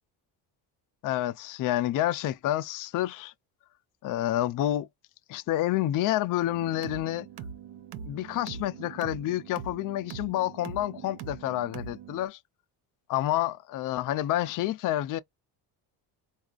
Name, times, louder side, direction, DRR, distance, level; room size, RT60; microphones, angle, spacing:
voice 1, 1.0-3.3 4.0-4.9 5.3-7.3 8.1-12.4 13.1-15.2, left 13 dB, 50° left, 0.4 m, -29 dB
sound 1, 6.5-12.3, right 7 dB, 60° right, 0.7 m, -42 dB
4.1 x 2.3 x 2.4 m
cardioid pair, 125°, 44 cm